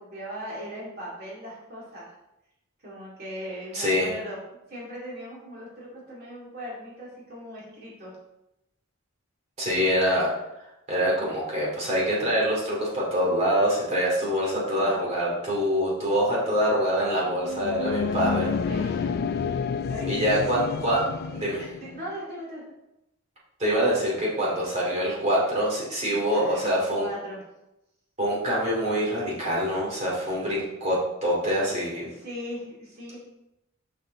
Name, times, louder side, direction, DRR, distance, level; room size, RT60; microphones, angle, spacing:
voice 1, 0.0-2.1 2.8-4.4 4.7-8.2 18.7-19.0 19.2-20.2 21.8-22.6 26.3-27.4 32.0-33.2, equal, 50° right, -6 dB, 2.5 m, -39 dB
voice 2, 3.7-4.1 9.6-10.3 10.9-18.5 20.1-21.0 21.3-21.7 23.6-27.1 28.2-32.1, equal, 35° right, -5 dB, 2.6 m, -25 dB
sound 1, 17.3-22.0, left 5 dB, 50° left, 0.3 m, -29 dB
6.7 x 5.4 x 3.8 m, 0.91 s
head